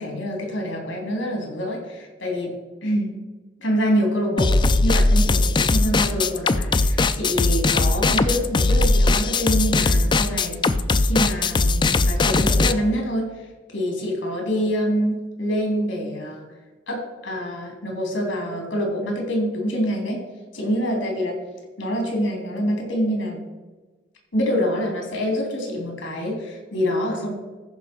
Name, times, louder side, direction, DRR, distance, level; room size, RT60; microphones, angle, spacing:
voice 1, 0.0-2.5 2.8-3.1 3.6-4.5 4.8-10.6 11.0-13.3 13.7-16.4 16.9-20.2 20.5-21.4 21.8-23.4 24.3-27.3, equal, 75° left, 1 dB, 3.3 m, -26 dB
sound 1, 4.4-12.7, left 3 dB, 25° left, 0.4 m, -19 dB
14.0 x 5.3 x 4.5 m, 1.2 s
head